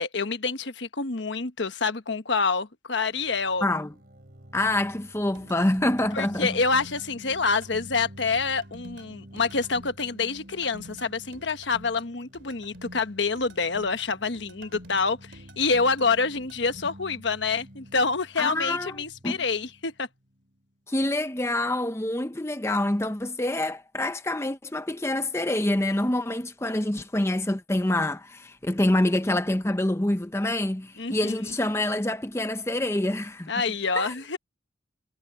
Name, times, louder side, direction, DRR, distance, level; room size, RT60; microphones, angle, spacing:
voice 1, 0.0-3.7 6.1-20.1 31.0-31.4 33.5-34.4, left 4 dB, 65° left, 1.2 m, -27 dB
sound 1, 3.1-20.7, equal, 50° right, 3.0 m, -50 dB
voice 2, 3.6-3.9 4.5-6.6 18.4-18.9 19.2-19.4 20.9-33.5 34.0-34.1, left 1 dB, 15° left, 0.7 m, -26 dB
sound 2, 5.3-16.9, right 1 dB, 70° right, 2.9 m, -49 dB
head